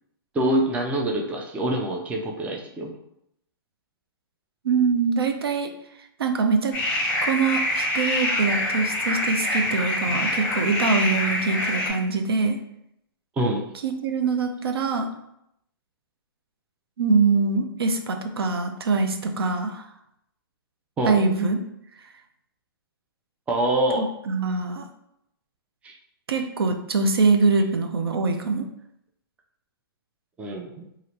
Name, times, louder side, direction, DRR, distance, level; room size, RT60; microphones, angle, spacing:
voice 1, 0.3-2.9 13.4-13.6 21.0-21.2 23.5-24.1 25.8-25.9 30.4-30.8, right 1 dB, 10° right, 0 dB, 0.4 m, -25 dB
voice 2, 4.6-5.7 6.2-6.8 7.2-12.6 13.8-15.1 17.0-19.9 21.1-21.6 24.0-24.9 26.3-28.7, right 4 dB, 90° right, 6 dB, 0.4 m, -23 dB
sound 1, 6.7-11.9, left 1 dB, 15° left, 1.1 m, -25 dB
2.8 x 2.5 x 3.0 m, 0.77 s
hypercardioid pair, 135°, 12 cm